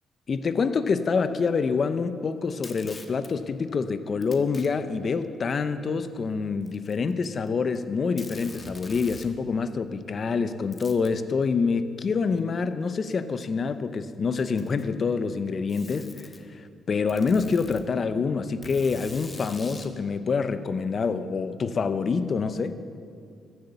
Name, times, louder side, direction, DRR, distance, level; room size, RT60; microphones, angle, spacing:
voice 1, 0.3-22.7, left 5 dB, 45° left, 11 dB, 0.7 m, -26 dB
Packing tape duct tape, 2.5-3.3 4.2-4.7 5.5-5.6 6.6-7.5 7.7-7.8 8.2-9.3 10.7-11.2 12.4-12.5 13.4-13.5 14.3-14.9 15.7-16.4 17.1-17.8 18.6-19.9, left 3 dB, 30° left, 1.3 m, -44 dB
14.0 x 7.9 x 6.8 m, 2.4 s
cardioid pair, 90°, 0 cm